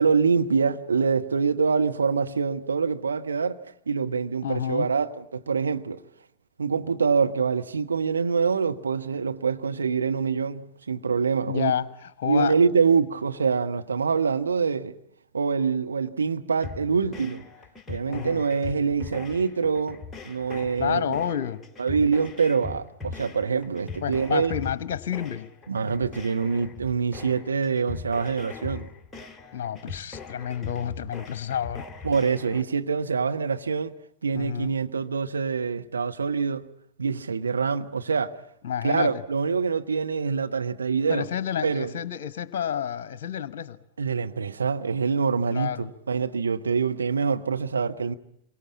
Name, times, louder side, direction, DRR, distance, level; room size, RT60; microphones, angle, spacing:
voice 1, 0.0-3.6 3.9-6.0 6.6-11.7 12.3-14.9 15.3-17.4 17.9-21.2 21.8-24.5 25.7-28.9 32.0-33.9 34.2-36.7 37.0-38.3 38.8-41.3 41.6-41.9 44.0-48.1, right 5 dB, 75° right, 1.1 m, -25 dB
voice 2, 4.4-4.9 11.5-12.6 18.1-18.5 20.8-21.6 24.0-25.5 29.5-31.9 34.3-34.7 38.6-39.2 41.1-43.8 45.5-45.9, left 9 dB, 55° left, 1.0 m, -29 dB
sound 1, 16.6-32.6, left 5 dB, 10° left, 2.2 m, -41 dB
27.5 x 23.5 x 8.5 m
figure-of-eight pair, 90°, 0 cm